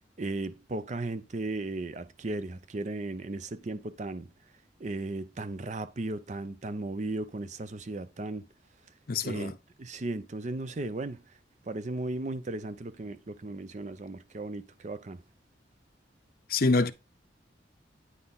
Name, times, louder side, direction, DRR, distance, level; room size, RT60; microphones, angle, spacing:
voice 1, 0.2-4.3 4.8-8.4 9.2-9.5 9.8-11.2 11.6-15.2, right 2 dB, 40° right, 0.5 m, -36 dB
voice 2, 9.1-9.5 16.5-16.9, left 3 dB, 50° left, 0.6 m, -25 dB
9.6 x 3.9 x 4.0 m
head